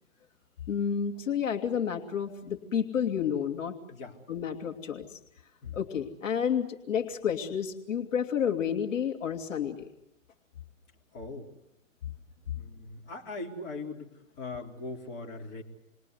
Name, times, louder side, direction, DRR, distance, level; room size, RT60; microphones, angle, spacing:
voice 1, 0.7-3.7 4.3-5.2 5.7-9.9, left 8 dB, 70° left, 4 dB, 2.6 m, -30 dB
voice 2, 11.1-11.5 12.6-15.6, left 3 dB, 25° left, 0 dB, 3.8 m, -40 dB
29.0 x 22.0 x 8.2 m, 0.88 s
hypercardioid pair, 145°, 40 cm